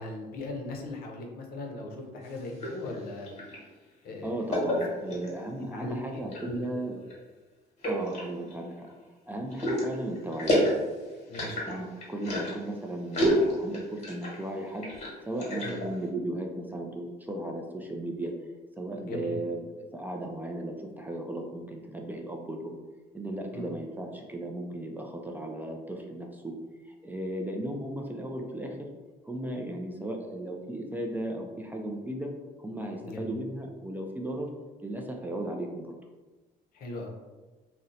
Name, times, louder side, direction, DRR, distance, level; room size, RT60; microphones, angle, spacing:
voice 1, 0.0-3.3 4.0-4.3 5.7-6.8 11.3-11.6 15.6-15.8 19.0-19.3 23.5-23.7 33.0-33.3 36.7-37.1, left 2 dB, 65° left, 2 dB, 0.6 m, -38 dB
sound 1, 2.2-3.6 4.5-5.4 6.0-6.6 7.0-7.2 7.8-8.9 9.5-12.7 13.1-14.4 14.7-15.9, equal, 45° left, 1.2 m, -29 dB
voice 2, 4.2-7.0 7.9-8.9 9.3-10.6 11.7-14.9 15.2-18.3 18.8-22.8 23.1-28.9 29.2-32.3 32.6-34.5 34.8-36.0, right 1 dB, 10° right, 1 dB, 0.3 m, -36 dB
2.7 x 2.1 x 3.7 m, 1.2 s
cardioid pair, 110°, 17 cm